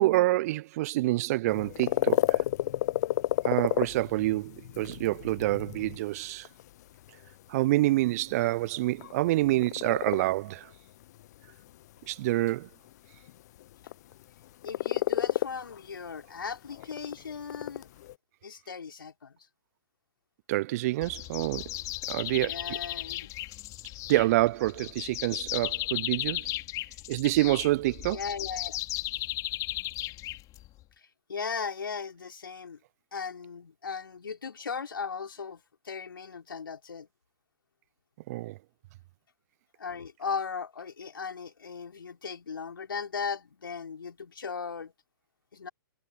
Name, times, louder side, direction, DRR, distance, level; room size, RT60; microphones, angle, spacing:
voice 1, 0.0-2.4 3.4-6.5 7.5-10.7 12.1-12.7 20.5-21.7 22.1-22.8 24.1-26.5 27.1-28.2 38.3-38.6, right 18 dB, 45° right, 0.6 m, -27 dB
sound 1, 1.5-18.1, left 14 dB, 50° left, 0.8 m, -32 dB
voice 2, 14.6-17.9 18.4-19.4 22.4-23.3 28.1-28.8 31.3-32.8 33.1-37.1 39.8-44.9 45.5-45.7, left 5 dB, 75° left, 4.5 m, -37 dB
sound 2, 21.0-30.8, left 17 dB, 30° left, 3.5 m, -36 dB
figure-of-eight pair, 115°, 12 cm